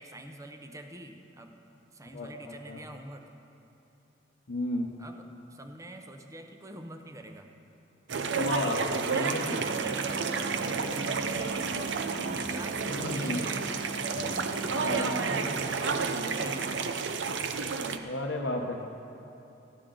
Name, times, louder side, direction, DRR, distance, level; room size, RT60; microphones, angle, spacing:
voice 1, 0.0-1.6 1.9-3.3 5.0-5.2 5.5-7.5 8.5-11.6 12.2-13.7 14.1-16.9, right 1 dB, 20° right, 5 dB, 0.7 m, -45 dB
voice 2, 2.1-2.8 4.5-4.9 8.3-9.6 12.9-13.4 14.7-15.1 18.0-18.9, left 1 dB, 85° left, 1 dB, 0.8 m, -33 dB
sound 1, 8.1-18.0, right 5 dB, 85° right, 0.6 m, -31 dB
sound 2, 9.5-15.5, equal, 35° left, 1.2 m, -43 dB
14.0 x 11.0 x 3.8 m, 3.0 s
head